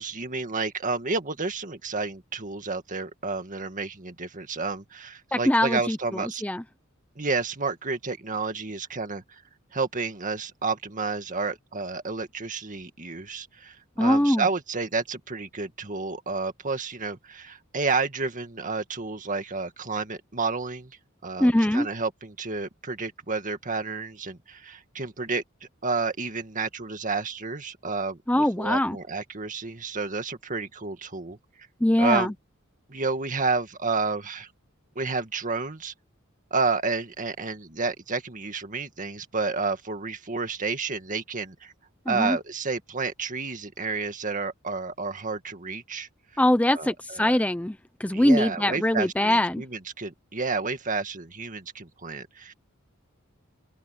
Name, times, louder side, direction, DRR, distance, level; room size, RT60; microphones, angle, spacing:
voice 1, 0.0-6.4 7.2-9.2 9.7-20.9 21.2-31.4 32.0-32.3 32.9-34.5 35.0-35.9 36.5-41.7 42.1-46.1 46.7-47.4 48.1-52.5, right 4 dB, 40° right, 2.0 m, -30 dB
voice 2, 5.3-6.6 14.0-14.5 21.4-21.9 28.3-29.0 31.8-32.3 42.1-42.4 46.4-49.6, left 1 dB, 5° left, 0.7 m, -23 dB
open air
head